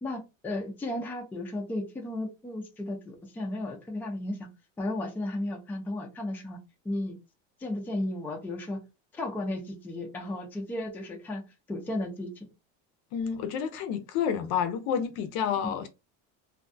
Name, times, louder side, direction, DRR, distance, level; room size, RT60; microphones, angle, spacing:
voice 1, 0.0-4.4 4.8-6.6 6.8-7.2 7.6-8.8 9.1-11.4 11.7-12.3 15.6-15.7, left 1 dB, 5° left, 0.4 m, -34 dB
voice 2, 13.1-15.9, left 8 dB, 60° left, 0.5 m, -29 dB
2.6 x 2.2 x 2.5 m
cardioid pair, 145°, 35 cm